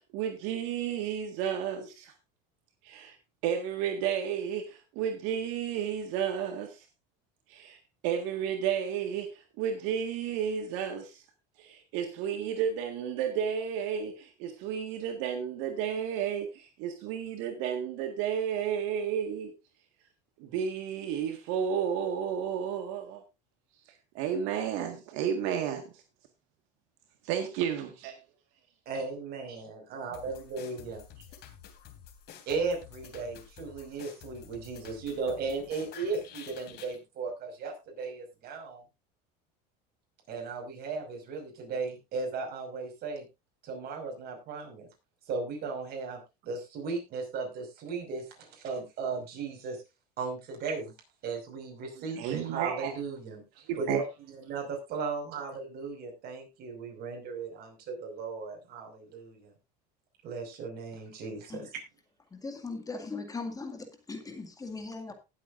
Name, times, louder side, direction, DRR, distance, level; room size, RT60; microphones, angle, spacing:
voice 1, 0.0-2.1 2.8-3.2 3.4-6.9 7.5-7.8 8.0-11.2 11.6-19.5 20.4-23.2 24.2-25.9 27.2-28.1 52.2-52.9 53.7-54.0, right 8 dB, 70° right, 1.8 m, -32 dB
voice 2, 28.9-31.0 32.5-38.8 40.3-43.3 43.6-44.9 45.3-49.8 50.2-50.9 51.2-53.4 53.8-59.5 60.2-61.7, right 4 dB, 50° right, 5.6 m, -36 dB
sound 1, 30.1-37.0, left 9 dB, 55° left, 2.9 m, -50 dB
voice 3, 62.3-65.1, left 3 dB, 15° left, 2.1 m, -39 dB
18.5 x 8.1 x 2.6 m
supercardioid pair, 115°, 20 cm